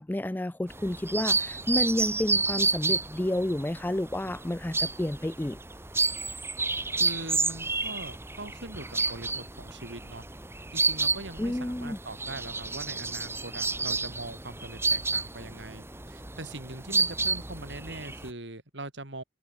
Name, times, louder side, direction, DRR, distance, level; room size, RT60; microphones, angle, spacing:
voice 1, 0.0-5.6 11.4-12.0, left 1 dB, 10° left, 0.4 m, -30 dB
sound 1, 0.7-18.3, right 3 dB, 15° right, 2.3 m, -30 dB
voice 2, 6.9-10.3 10.7-19.2, right 2 dB, 70° right, 4.1 m, -42 dB
head